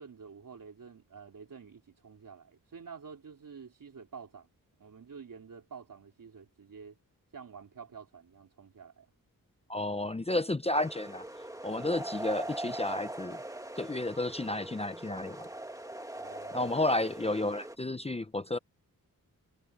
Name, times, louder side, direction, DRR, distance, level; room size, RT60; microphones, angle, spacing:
voice 1, 0.0-4.5 4.8-7.0 7.3-9.1 12.4-12.6 16.2-16.8, right 6 dB, 65° right, 3.4 m, -49 dB
voice 2, 9.7-11.2 11.6-13.4 13.8-15.5 16.5-18.6, left 2 dB, 15° left, 0.7 m, -31 dB
sound 1, 10.7-17.8, right 1 dB, 10° right, 1.6 m, -41 dB
wide cardioid pair, 115°, 35 cm